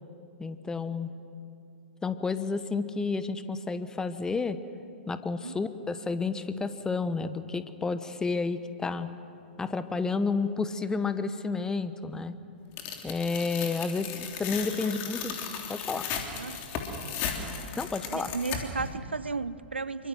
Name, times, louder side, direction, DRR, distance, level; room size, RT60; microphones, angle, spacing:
voice 1, 0.4-1.1 2.0-4.6 5.1-9.1 9.6-12.4 13.0-15.4 15.7-16.1 17.8-18.3, left 4 dB, 10° left, 12 dB, 1.1 m, -31 dB
Tearing, 12.8-18.9, left 6 dB, 35° left, 3.2 m, -36 dB
voice 2, 16.1-16.6 18.1-20.1, right 4 dB, 85° right, 18 dB, 0.6 m, -34 dB
27.0 x 24.0 x 6.1 m, 2.6 s
figure-of-eight pair, 105°, 6 cm